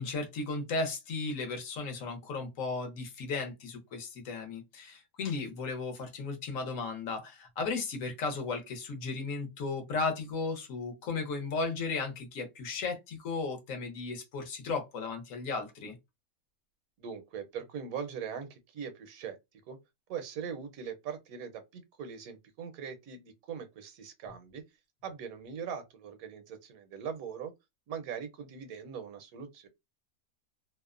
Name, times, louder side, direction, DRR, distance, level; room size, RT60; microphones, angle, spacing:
voice 1, 0.0-16.0, left 4 dB, 70° left, 1.1 m, -35 dB
voice 2, 17.0-19.4 19.7-19.8 20.1-24.6 25.0-27.5 27.9-29.7, right 7 dB, 75° right, 1.0 m, -41 dB
2.7 x 2.0 x 2.4 m
omnidirectional pair, 1.5 m